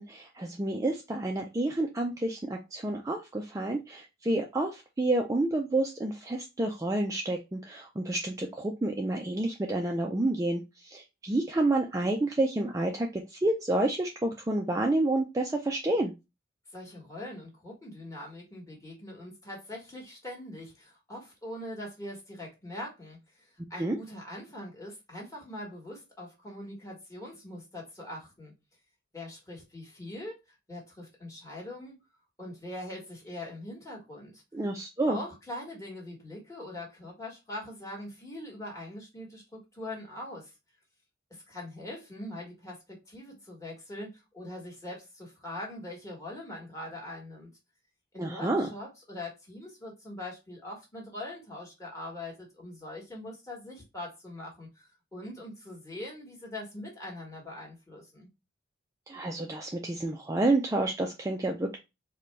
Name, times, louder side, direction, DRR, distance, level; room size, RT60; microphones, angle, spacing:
voice 1, 0.0-16.1 23.8-24.0 34.5-35.2 48.2-48.7 59.1-61.8, right 2 dB, 15° right, 0.3 m, -29 dB
voice 2, 16.7-28.5 29.1-30.4 30.7-32.0 32.4-34.4 35.1-40.5 41.3-47.5 48.1-58.3, left 1 dB, 15° left, 1.4 m, -42 dB
4.1 x 2.2 x 3.1 m
head